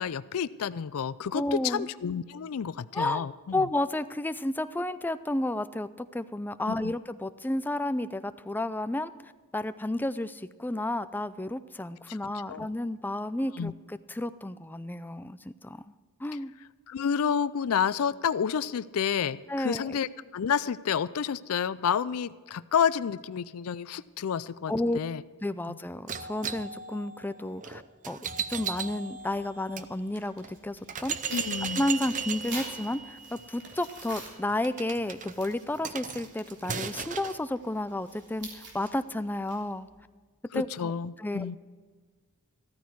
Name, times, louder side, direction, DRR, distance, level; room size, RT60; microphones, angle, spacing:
voice 1, 0.0-3.7 6.7-6.9 12.1-12.2 12.5-12.7 13.6-13.7 16.9-25.2 25.7-25.8 31.3-31.8 40.5-41.6, left 7 dB, 70° left, 17 dB, 0.4 m, -30 dB
voice 2, 1.3-1.9 2.9-3.2 3.5-9.1 9.5-15.9 16.2-16.5 19.5-20.0 24.7-25.0 25.4-31.2 31.7-39.9 40.5-40.9 41.2-41.6, left 1 dB, 10° left, 12 dB, 0.4 m, -32 dB
sound 1, 26.1-29.9 30.4-30.5 30.9-37.4, right 6 dB, 35° right, 0.6 m, -37 dB
Tearing, 29.2-39.9, right 2 dB, 55° right, 3.4 m, -48 dB
14.0 x 13.5 x 4.7 m, 1.5 s
head